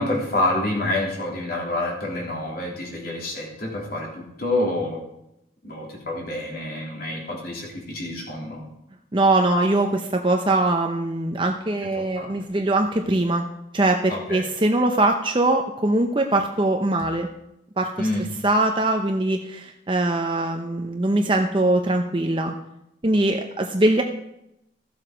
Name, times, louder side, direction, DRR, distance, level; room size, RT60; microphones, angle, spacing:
voice 1, 0.0-5.0 5.6-8.6 12.1-12.3 14.1-14.4 18.0-18.2, left 1 dB, 50° left, -2 dB, 3.3 m, -27 dB
voice 2, 9.1-13.4 13.7-17.3 17.8-18.1 18.4-22.5 23.0-24.0, right 2 dB, 25° right, 3 dB, 0.7 m, -22 dB
14.0 x 7.6 x 5.1 m, 0.84 s
head